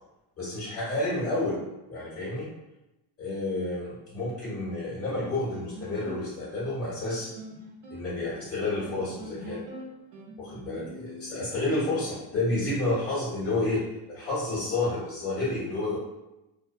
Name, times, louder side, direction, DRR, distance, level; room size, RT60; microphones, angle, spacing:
voice 1, 0.4-1.6 1.9-2.5 3.2-7.3 7.9-9.6 10.4-16.0, left 2 dB, 30° left, -8 dB, 1.2 m, -30 dB
sound 1, 5.2-12.2, equal, 70° right, 0.8 m, -44 dB
2.5 x 2.1 x 2.6 m, 0.94 s
cardioid pair, 150°, 47 cm